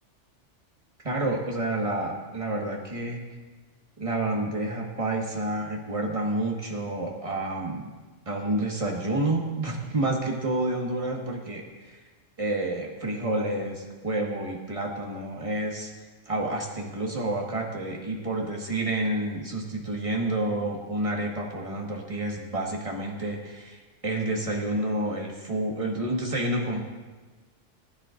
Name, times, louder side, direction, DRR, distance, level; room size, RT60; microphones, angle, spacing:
voice 1, 1.0-3.2 4.0-7.9 8.3-12.0 12.4-15.9 16.3-26.8, right 2 dB, 30° right, -1 dB, 1.6 m, -29 dB
20.0 x 10.0 x 2.5 m, 1.3 s
omnidirectional pair, 1.2 m